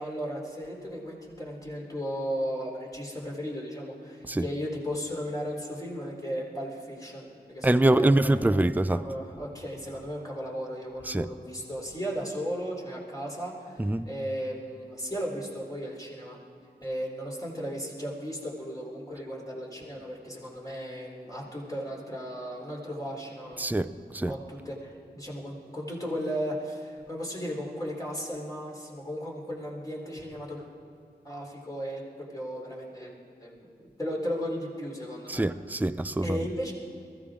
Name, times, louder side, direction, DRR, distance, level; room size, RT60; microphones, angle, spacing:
voice 1, 0.0-8.6 8.9-16.4 16.8-23.7 24.3-30.7 31.2-33.1 33.4-35.4 36.2-36.7, equal, 20° left, 3.9 m, -35 dB
voice 2, 7.6-9.0 11.1-11.3 13.8-14.1 23.6-24.3 35.3-36.4, right 1 dB, 10° right, 0.5 m, -24 dB
22.0 x 14.5 x 3.8 m
wide cardioid pair, 50°, 17 cm